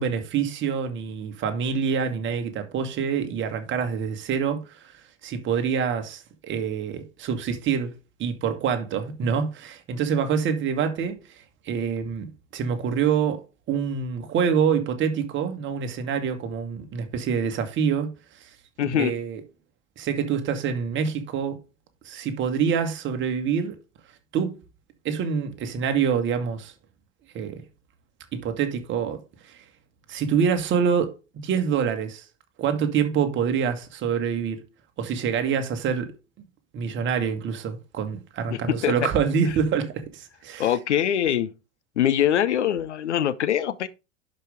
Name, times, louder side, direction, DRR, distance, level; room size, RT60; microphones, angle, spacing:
voice 1, 0.0-7.9 8.2-13.4 13.7-18.1 18.4-18.5 18.8-19.4 20.0-21.6 22.0-23.8 24.3-24.6 25.0-26.7 27.3-27.6 28.3-29.6 30.1-31.1 31.4-32.2 32.6-34.6 35.0-36.1 36.7-40.8, right 7 dB, 30° right, 1.9 m, -26 dB
voice 2, 18.8-19.1 38.5-39.1 40.6-41.5 42.0-43.9, left 10 dB, 65° left, 0.9 m, -23 dB
11.0 x 5.3 x 3.5 m
figure-of-eight pair, 90°, 38 cm